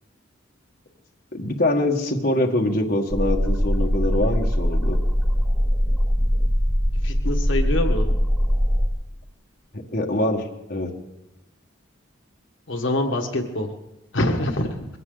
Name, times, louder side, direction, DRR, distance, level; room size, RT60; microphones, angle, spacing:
voice 1, 1.3-5.0 9.7-10.9, left 1 dB, 50° left, 0 dB, 1.5 m, -24 dB
sound 1, 3.1-8.9, equal, ahead, 1.7 m, -21 dB
voice 2, 7.0-8.1 12.7-13.7 14.1-14.8, left 1 dB, 70° left, 3 dB, 1.5 m, -25 dB
21.5 x 16.5 x 3.9 m, 0.97 s
head